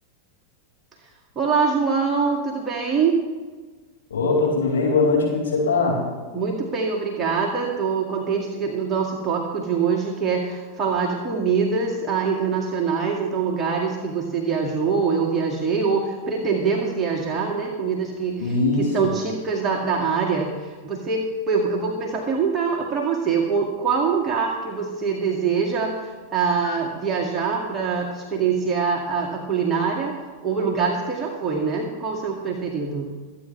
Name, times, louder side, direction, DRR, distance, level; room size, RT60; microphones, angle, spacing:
voice 1, 1.4-3.2 6.3-30.2 30.4-33.1, right 5 dB, 20° right, -2 dB, 2.0 m, -24 dB
voice 2, 4.1-6.0 18.4-19.1 26.6-26.8, left 3 dB, 65° left, -3 dB, 4.9 m, -21 dB
26.5 x 9.2 x 3.2 m, 1.4 s
figure-of-eight pair, 90°, 0 cm